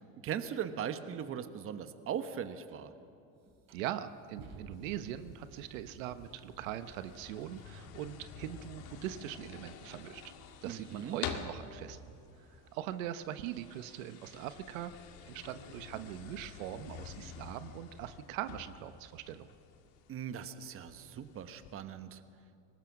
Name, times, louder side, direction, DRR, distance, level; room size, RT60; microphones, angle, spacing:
voice 1, 0.0-2.9 10.6-11.2 20.1-22.2, right 8 dB, 35° right, 10 dB, 1.2 m, -39 dB
sound 1, 2.7-2.8 3.4-7.7, right 3 dB, 60° right, 5.6 m, -54 dB
voice 2, 3.7-10.2 10.6-12.0 12.4-14.9 15.3-19.5, right 12 dB, 85° right, 11 dB, 1.1 m, -41 dB
sound 2, 4.7-21.7, left 7 dB, 65° left, 2.1 m, -49 dB
24.0 x 19.5 x 6.0 m, 2.5 s
supercardioid pair, 130°, 39 cm